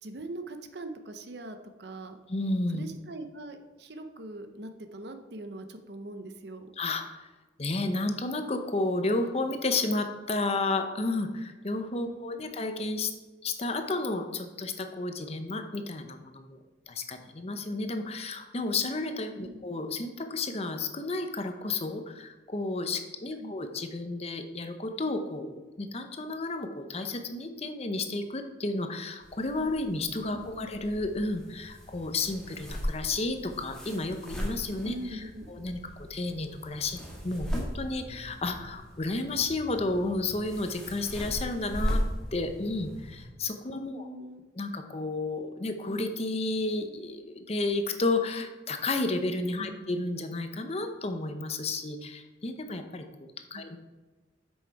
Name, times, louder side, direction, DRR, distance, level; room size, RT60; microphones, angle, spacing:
voice 1, 0.0-2.2 2.7-6.7 12.1-12.5 19.4-19.6 23.4-23.5 30.3-30.7 34.8-35.5 43.9-44.4 49.6-49.9 53.5-53.8, right 2 dB, 60° right, 7 dB, 0.8 m, -42 dB
voice 2, 2.3-2.8 6.8-7.3 7.6-13.1 13.4-16.6 16.9-35.2 35.5-37.0 37.2-42.0 42.3-44.0 44.6-53.8, left 2 dB, 35° left, 7 dB, 0.7 m, -32 dB
sound 1, 29.2-43.2, equal, 5° left, 1.7 m, -38 dB
8.3 x 6.3 x 4.6 m, 1.2 s
head